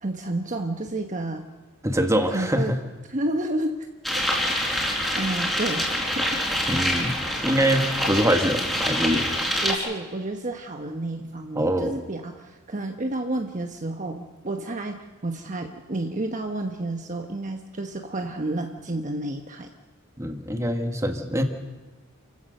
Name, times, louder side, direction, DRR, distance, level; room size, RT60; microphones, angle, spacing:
voice 1, 0.0-1.5 2.3-2.8 3.1-3.8 4.1-4.2 5.2-5.8 6.1-6.4 9.6-19.7, right 2 dB, 35° right, 4 dB, 1.1 m, -30 dB
voice 2, 1.8-2.8 6.7-9.3 11.6-11.9 20.2-21.4, equal, 15° right, 5 dB, 1.8 m, -24 dB
sound 1, 4.0-9.7, equal, ahead, 4.4 m, -26 dB
29.0 x 16.0 x 6.6 m, 1.3 s
head